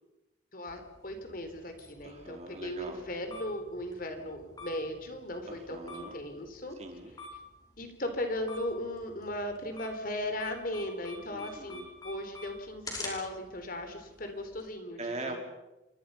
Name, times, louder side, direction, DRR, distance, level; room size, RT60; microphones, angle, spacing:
voice 1, 0.5-6.8 7.8-15.0 15.3-15.4, left 1 dB, 50° left, 7 dB, 3.7 m, -37 dB
sound 1, 0.7-14.6, left 2 dB, 20° left, 5.4 m, -49 dB
voice 2, 2.0-3.0 5.5-6.2 6.8-7.1 11.3-11.9 15.0-15.4, right 2 dB, 35° right, 3 dB, 4.0 m, -42 dB
27.0 x 24.0 x 5.7 m, 1.0 s
head